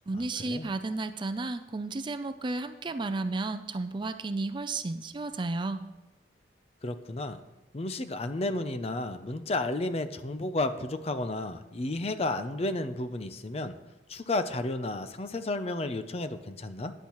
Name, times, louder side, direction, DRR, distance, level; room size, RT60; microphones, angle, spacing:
voice 1, 0.1-5.8, right 3 dB, 25° right, 9 dB, 0.4 m, -33 dB
voice 2, 6.8-7.4 7.7-13.8 14.1-16.9, left 2 dB, 30° left, 10 dB, 0.5 m, -32 dB
14.0 x 10.0 x 3.0 m, 1.1 s
head